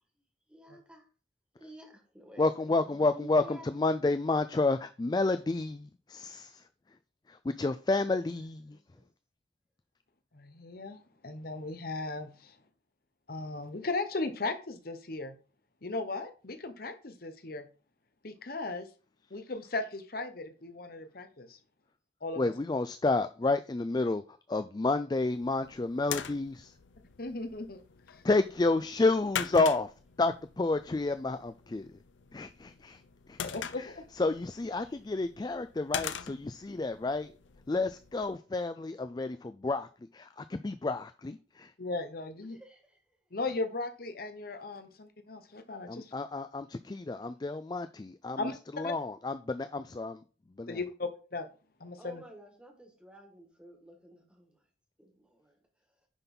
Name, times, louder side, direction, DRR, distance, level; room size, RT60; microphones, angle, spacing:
voice 1, 0.5-1.0 1.6-3.8 8.7-9.1 34.8-35.0 42.5-43.0 52.0-54.6 55.0-55.6, right 1 dB, 5° right, 2.0 m, -52 dB
voice 2, 2.4-6.7 7.3-8.8 22.4-26.7 28.2-29.9 30.2-32.0 32.3-33.0 33.3-33.4 33.8-37.3 37.7-41.7 45.9-50.2 50.6-50.8, left 3 dB, 20° left, 0.3 m, -30 dB
voice 3, 10.3-11.0 11.2-12.5 13.3-15.3 15.8-17.6 18.2-18.9 19.3-21.6 22.2-22.5 27.2-27.8 33.4-34.0 41.8-42.6 43.3-46.1 48.4-48.5 48.8-48.9 50.7-51.5 51.8-52.2, left 3 dB, 50° left, 0.9 m, -37 dB
sound 1, 25.3-38.4, left 8 dB, 85° left, 0.6 m, -43 dB
9.9 x 4.0 x 5.4 m
head